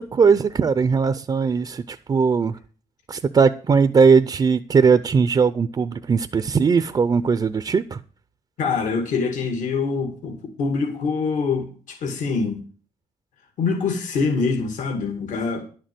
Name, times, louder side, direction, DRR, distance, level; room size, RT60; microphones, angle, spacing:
voice 1, 0.0-2.6 3.1-8.0, right 5 dB, 30° right, 0.5 m, -19 dB
voice 2, 8.6-12.6 13.6-15.6, left 4 dB, 75° left, 2.1 m, -24 dB
11.0 x 6.6 x 7.7 m
cardioid pair, 130°, 13 cm